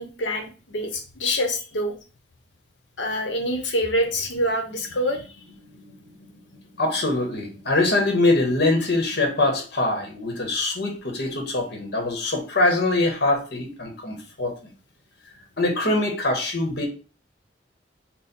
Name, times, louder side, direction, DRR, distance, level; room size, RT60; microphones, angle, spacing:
voice 1, 0.0-1.9 3.0-5.2, equal, 85° left, 3 dB, 0.9 m, -26 dB
voice 2, 6.8-14.7 15.6-16.9, left 2 dB, 65° left, 2 dB, 1.0 m, -23 dB
4.3 x 2.1 x 3.9 m, 0.34 s
head